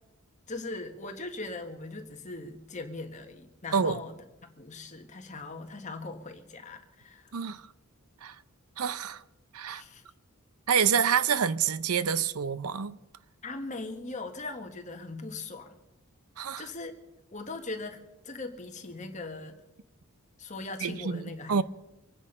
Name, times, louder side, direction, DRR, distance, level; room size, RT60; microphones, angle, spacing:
voice 1, 0.5-7.3 9.7-10.1 13.4-15.7 16.6-16.9 17.3-18.0 18.2-19.6 20.4-21.6, left 3 dB, 35° left, 1.6 m, -40 dB
voice 2, 7.3-7.6 8.2-8.4 8.8-9.2 9.5-9.8 10.7-13.0 16.4-16.6 20.8-21.2 21.5-21.6, right 7 dB, 80° right, 0.6 m, -27 dB
25.5 x 9.8 x 5.5 m
head